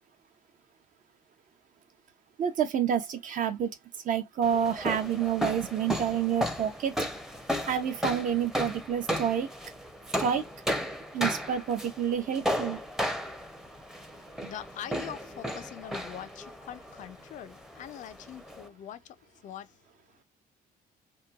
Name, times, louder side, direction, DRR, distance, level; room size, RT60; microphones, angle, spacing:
voice 1, 2.4-3.8 4.0-6.9 7.6-9.5 10.2-10.5 11.1-12.8 14.4-14.5, right 8 dB, 50° right, 0.6 m, -28 dB
sound 1, 4.4-18.7, equal, 5° right, 0.6 m, -35 dB
voice 2, 14.5-19.2 19.4-19.7, left 10 dB, 50° left, 0.4 m, -43 dB
2.9 x 2.2 x 2.4 m
cardioid pair, 110°, 17 cm